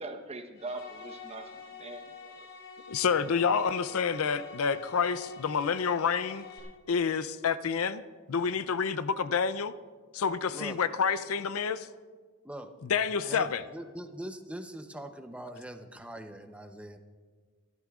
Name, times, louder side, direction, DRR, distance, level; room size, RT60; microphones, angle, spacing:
voice 1, 0.0-2.5, right 2 dB, 30° right, 6 dB, 1.0 m, -42 dB
sound 1, 0.5-6.6, left 5 dB, 55° left, 4.9 m, -47 dB
voice 2, 2.9-6.4 6.9-8.0 8.3-9.7 10.1-11.9 12.8-13.6, left 6 dB, 75° left, 13 dB, 0.5 m, -28 dB
voice 3, 13.2-17.0, right 1 dB, 5° right, 7 dB, 0.7 m, -42 dB
26.5 x 12.5 x 2.4 m, 1.5 s
head